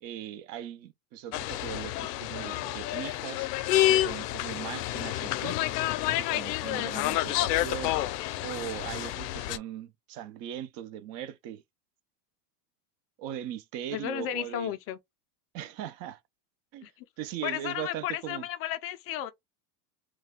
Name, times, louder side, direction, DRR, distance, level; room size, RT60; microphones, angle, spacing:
voice 1, 0.0-3.5 3.9-5.6 6.1-7.9 8.4-11.6 13.2-14.7 15.5-16.2 16.7-16.9 17.2-18.5, right 11 dB, 45° right, 0.6 m, -39 dB
sound 1, 1.3-9.6, left 14 dB, 75° left, 0.6 m, -29 dB
voice 2, 6.8-7.2 13.9-15.0 16.8-17.0 17.4-19.3, left 12 dB, 30° left, 0.4 m, -34 dB
3.2 x 2.2 x 3.6 m
supercardioid pair, 130°, 48 cm